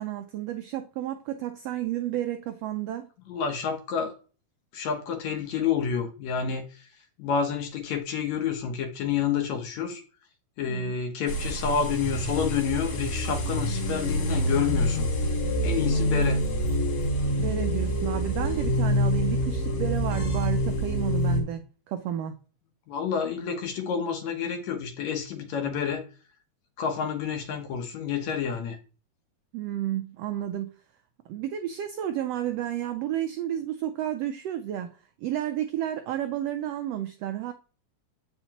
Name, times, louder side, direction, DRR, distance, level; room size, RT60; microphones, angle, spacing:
voice 1, 0.0-3.1 10.7-10.9 15.9-16.3 17.4-21.6 21.9-22.3 29.5-30.7 31.3-37.5, right 11 dB, 85° right, 1.4 m, -31 dB
voice 2, 3.3-4.1 4.7-6.9 7.2-10.0 10.6-15.1 15.6-16.4 22.9-26.0 26.8-28.8, left 7 dB, 70° left, 2.3 m, -29 dB
sound 1, 11.3-21.4, equal, 55° left, 2.5 m, -26 dB
8.0 x 5.6 x 2.9 m
omnidirectional pair, 3.4 m